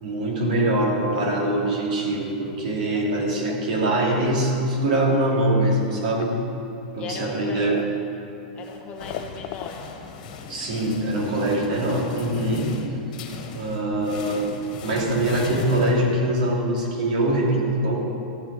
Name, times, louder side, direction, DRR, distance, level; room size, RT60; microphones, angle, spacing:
voice 1, 0.0-6.4 6.9-7.8 10.5-12.7 13.5-14.5 14.8-18.0, right 1 dB, 70° right, -2 dB, 2.8 m, -23 dB
sound 1, 1.1-2.5 2.9-5.1 5.9-6.4 6.9-7.0 7.7-8.1 8.4-8.5 8.8-9.9, left 14 dB, 45° left, 0.4 m, -36 dB
voice 2, 7.0-7.9 8.6-9.8, left 4 dB, 30° left, 1 dB, 1.3 m, -37 dB
sound 2, 8.6-16.5, left 5 dB, 60° left, 1.5 m, -37 dB
14.0 x 8.5 x 5.0 m, 2.8 s
supercardioid pair, 150°, 5 cm